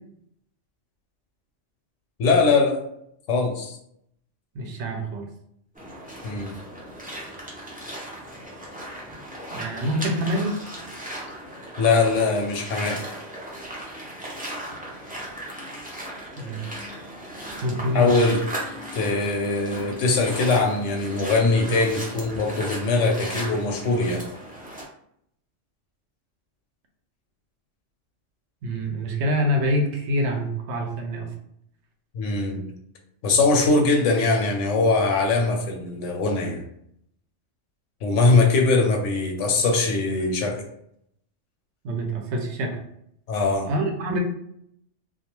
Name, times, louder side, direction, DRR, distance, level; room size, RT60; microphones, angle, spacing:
voice 1, 2.2-2.8 3.3-3.8 6.2-6.5 11.8-13.0 17.9-18.4 18.9-24.2 32.1-32.6 33.2-36.6 38.0-40.6 43.3-43.7, left 3 dB, 85° left, 2 dB, 0.9 m, -21 dB
voice 2, 4.5-5.3 9.5-10.6 16.4-16.6 17.6-18.1 28.6-31.3 41.8-42.8 43.7-44.2, equal, 70° right, 3 dB, 0.8 m, -26 dB
sound 1, 5.7-24.8, right 1 dB, 15° right, 0.3 m, -37 dB
2.3 x 2.3 x 2.9 m, 0.72 s
omnidirectional pair, 1.3 m